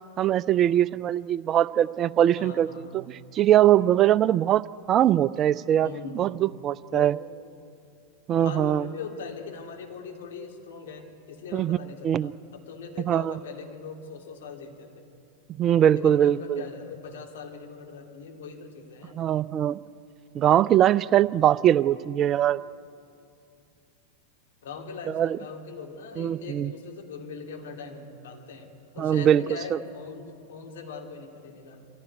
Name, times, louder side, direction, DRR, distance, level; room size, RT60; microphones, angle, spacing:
voice 1, 0.2-3.1 3.3-4.6 4.9-5.9 6.2-7.1 8.3-8.9 11.5-11.8 12.0-12.3 13.1-13.4 15.6-16.6 19.1-19.8 20.3-22.6 25.1-25.4 26.2-26.7 29.0-29.5 29.7-29.8, right 11 dB, 30° right, 19 dB, 0.5 m, -22 dB
voice 2, 2.4-3.1 5.8-6.3 6.9-7.1 8.4-15.0 15.9-19.2 24.6-28.7 28.9-31.9, left 4 dB, 60° left, 2 dB, 2.9 m, -41 dB
23.5 x 15.5 x 9.3 m, 2.5 s
figure-of-eight pair, 90°, 0 cm